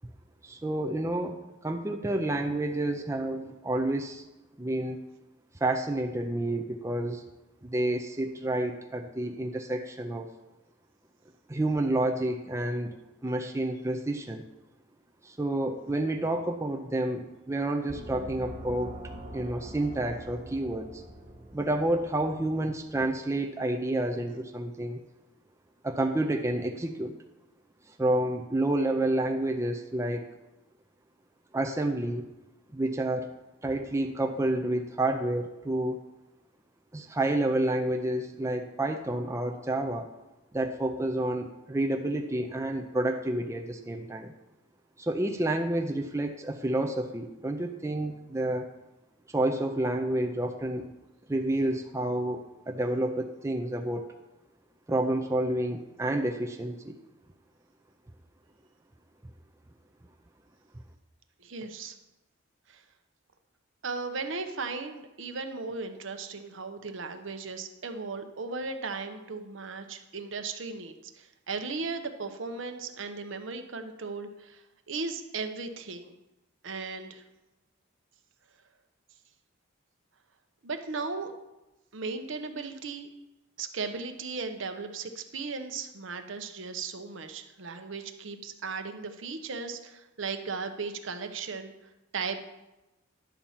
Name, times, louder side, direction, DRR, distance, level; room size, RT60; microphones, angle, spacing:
voice 1, 0.4-1.4 1.6-4.2 4.6-5.0 5.6-7.2 7.7-10.3 11.5-13.0 13.2-14.4 15.2-18.9 19.3-21.0 21.5-25.0 25.8-27.1 28.0-30.3 31.5-32.3 32.7-33.3 33.6-36.0 36.9-40.1 40.5-44.3 45.0-48.7 49.3-50.9 51.3-54.1 54.9-57.0, right 1 dB, 15° right, 3 dB, 0.5 m, -29 dB
Gong, 17.9-23.1, right 1 dB, 35° right, 1.4 m, -44 dB
voice 2, 61.4-62.0 62.7-62.8 63.8-76.1 76.6-77.2 80.6-81.3 81.9-83.1 83.6-91.7 92.1-92.4, right 4 dB, 65° right, 7 dB, 0.8 m, -36 dB
10.5 x 4.2 x 7.3 m, 1.0 s
head